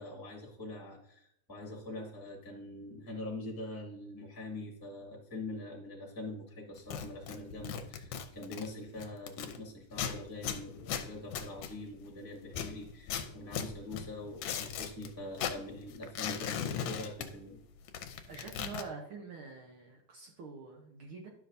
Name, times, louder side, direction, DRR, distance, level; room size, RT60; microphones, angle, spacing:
voice 1, 0.0-17.6, left 2 dB, 10° left, -2 dB, 1.6 m, -44 dB
sound 1, 6.8-9.6 9.9-12.1 12.5-15.1 15.3-17.6 17.8-18.8, left 8 dB, 75° left, 1.8 m, -38 dB
voice 2, 18.3-21.3, right 4 dB, 75° right, 2 dB, 1.2 m, -46 dB
11.5 x 6.0 x 2.7 m, 0.72 s
omnidirectional pair, 3.5 m